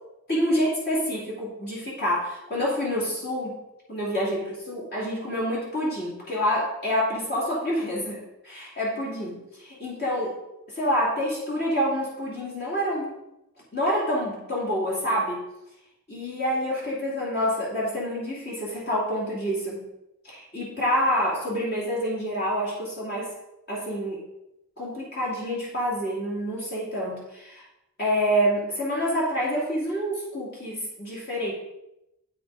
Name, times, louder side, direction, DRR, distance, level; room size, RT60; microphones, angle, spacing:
voice 1, 0.3-3.6 3.9-10.4 10.7-13.1 13.7-15.4 16.1-19.8 20.2-23.3 23.7-24.2 24.8-27.6 28.0-31.5, equal, 50° left, -5 dB, 2.7 m, -27 dB
8.4 x 6.1 x 4.8 m, 0.88 s
head